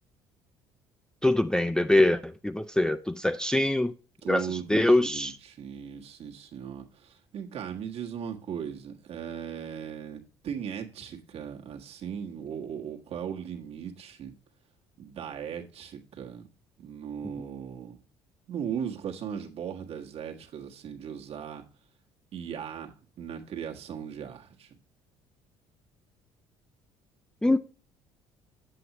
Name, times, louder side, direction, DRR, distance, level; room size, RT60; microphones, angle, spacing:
voice 1, 1.2-3.9 4.3-5.3 27.4-27.6, left 1 dB, 5° left, 0.4 m, -24 dB
voice 2, 4.2-14.3 15.0-16.4 16.8-18.0 18.5-21.6 22.3-24.7, right 8 dB, 55° right, 1.5 m, -38 dB
7.8 x 7.8 x 2.9 m
supercardioid pair, 75°, 12 cm